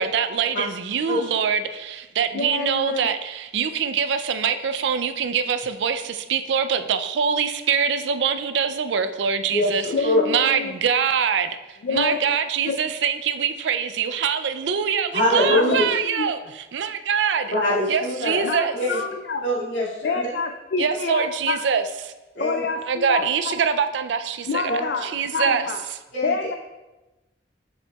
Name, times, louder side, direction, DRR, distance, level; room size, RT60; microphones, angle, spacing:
voice 1, 0.0-9.8 10.3-17.5 17.9-18.7 20.8-21.8 22.9-24.7 25.0-25.6, right 7 dB, 75° right, 10 dB, 0.4 m, -24 dB
voice 2, 2.3-3.1 9.9-10.7 11.8-12.4 12.7-12.8 15.5-16.4 18.4-19.4 20.0-21.6 22.4-23.5 24.5-25.8 26.2-26.5, left 4 dB, 65° left, 5 dB, 0.4 m, -27 dB
voice 3, 9.5-10.2 15.1-15.9 17.5-18.5 18.7-19.0 19.4-20.2 21.1-21.2 22.4-22.6 24.7-24.8 26.1-26.3, left 1 dB, 80° left, -7 dB, 2.2 m, -23 dB
7.2 x 6.7 x 2.3 m, 1.1 s
head